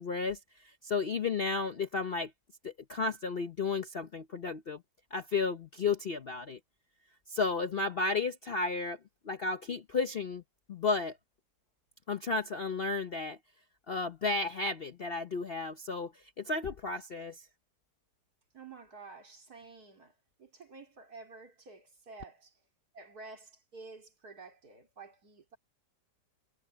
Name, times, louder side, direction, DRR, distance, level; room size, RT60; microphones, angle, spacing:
voice 1, 0.0-2.3 2.6-4.8 5.1-6.6 7.3-9.0 9.2-10.4 10.7-11.2 12.1-13.4 13.9-17.4, left 4 dB, 45° left, 0.8 m, -33 dB
voice 2, 18.5-22.6 22.9-25.6, right 4 dB, 60° right, 4.2 m, -51 dB
omnidirectional pair, 1.8 m